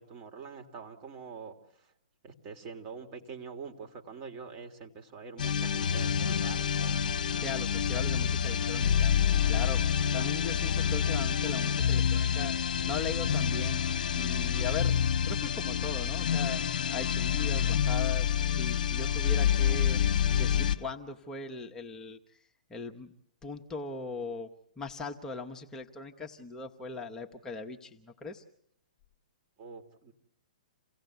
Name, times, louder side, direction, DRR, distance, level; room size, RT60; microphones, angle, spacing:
voice 1, 0.0-1.6 2.2-7.0 29.6-30.1, right 5 dB, 35° right, 4 dB, 2.7 m, -45 dB
sound 1, 5.4-20.8, left 8 dB, 65° left, 1.0 m, -28 dB
voice 2, 7.3-9.1 9.5-9.8 10.1-13.8 14.1-16.6 16.9-23.1 23.4-28.4, left 4 dB, 10° left, 1 dB, 1.1 m, -39 dB
28.5 x 17.0 x 8.0 m, 0.72 s
hypercardioid pair, 135°, 5 cm